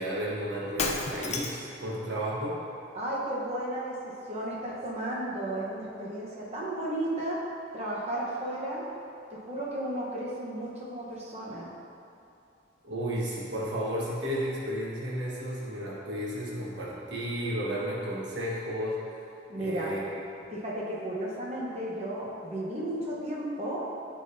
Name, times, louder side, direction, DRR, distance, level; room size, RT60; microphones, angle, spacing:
voice 1, 0.0-2.6 12.8-19.0 19.6-20.5, equal, 65° right, -6 dB, 1.3 m, -33 dB
Shatter, 0.8-1.8, left 4 dB, 35° left, 0.4 m, -31 dB
voice 2, 2.9-3.9 4.3-7.4 7.7-8.8 9.3-11.7 19.5-20.0 20.5-23.8, right 1 dB, 35° right, -5 dB, 1.0 m, -34 dB
9.8 x 3.8 x 2.7 m, 2.7 s
head